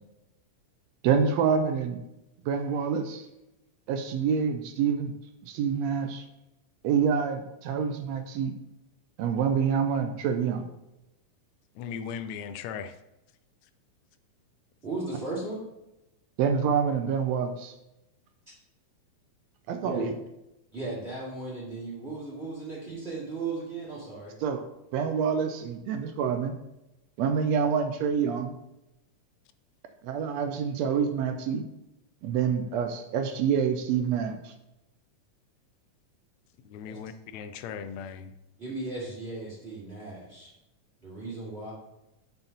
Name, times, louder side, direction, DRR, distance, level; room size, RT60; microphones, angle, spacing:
voice 1, 1.0-2.0 2.4-3.3 3.9-5.1 5.4-6.2 6.8-8.5 9.2-10.7 16.4-17.7 19.7-20.1 24.4-24.6 24.9-26.5 27.2-28.5 30.0-31.6 32.2-34.5, right 7 dB, 80° right, 7 dB, 1.5 m, -27 dB
voice 2, 11.8-12.9 36.6-38.3, left 7 dB, 80° left, 10 dB, 1.6 m, -38 dB
voice 3, 14.8-15.6 19.8-20.0 20.7-24.3 36.8-37.0 38.6-40.5 41.0-41.7, right 3 dB, 20° right, -6 dB, 2.3 m, -36 dB
5.8 x 5.8 x 5.3 m, 0.91 s
omnidirectional pair, 3.6 m